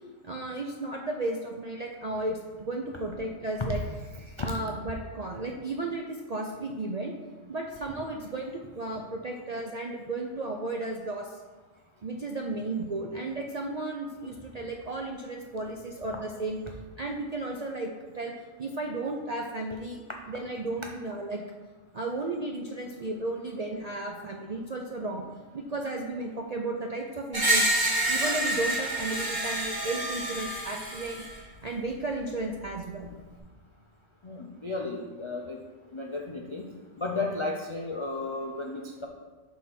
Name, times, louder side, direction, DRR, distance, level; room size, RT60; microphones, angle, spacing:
voice 1, 0.2-3.8 4.4-7.1 7.5-11.4 12.0-16.6 17.0-18.3 18.6-20.0 20.3-21.4 21.9-25.2 25.5-27.7 28.1-31.2 31.6-33.1, right 2 dB, 55° right, 1 dB, 0.4 m, -34 dB
Screech, 27.3-31.3, right 1 dB, 20° right, 1.1 m, -28 dB
voice 2, 34.2-35.6 35.9-36.6 37.0-39.1, left 3 dB, 50° left, 0 dB, 0.3 m, -33 dB
6.3 x 4.0 x 5.8 m, 1.3 s
omnidirectional pair, 1.3 m